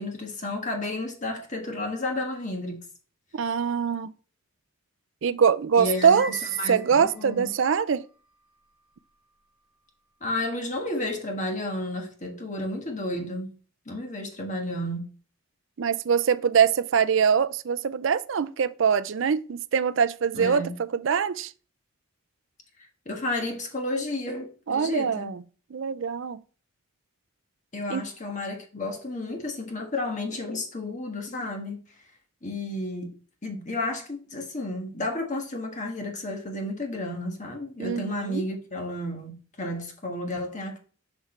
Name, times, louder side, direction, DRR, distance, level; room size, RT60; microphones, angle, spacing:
voice 1, 0.0-2.8 5.8-7.5 10.2-13.5 13.9-15.1 20.3-20.7 22.8-25.3 27.7-31.8 32.4-33.1 33.4-40.8, left 2 dB, 35° left, 1.4 m, -32 dB
voice 2, 3.3-4.1 5.2-6.3 6.7-8.0 15.8-21.5 24.7-25.4 25.7-26.4 27.9-28.0 37.8-38.4, right 7 dB, 60° right, 0.4 m, -23 dB
sound 1, 5.9-7.7, left 1 dB, 80° left, 1.7 m, -43 dB
6.6 x 6.1 x 3.2 m
head